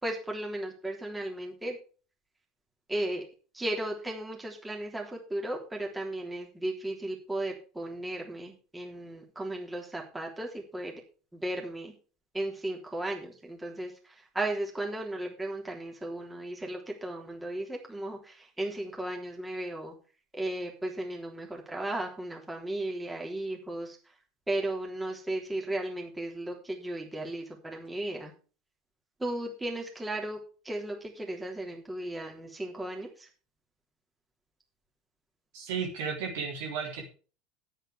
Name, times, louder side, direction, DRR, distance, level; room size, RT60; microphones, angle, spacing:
voice 1, 0.0-1.8 2.9-3.2 3.5-11.0 11.3-11.9 12.3-19.9 20.3-24.0 24.5-28.3 29.2-33.3, right 1 dB, 10° right, 0 dB, 3.4 m, -35 dB
voice 2, 35.5-37.0, right 6 dB, 60° right, 0 dB, 3.5 m, -34 dB
10.5 x 8.3 x 5.0 m, 0.37 s
figure-of-eight pair, 70°, 0 cm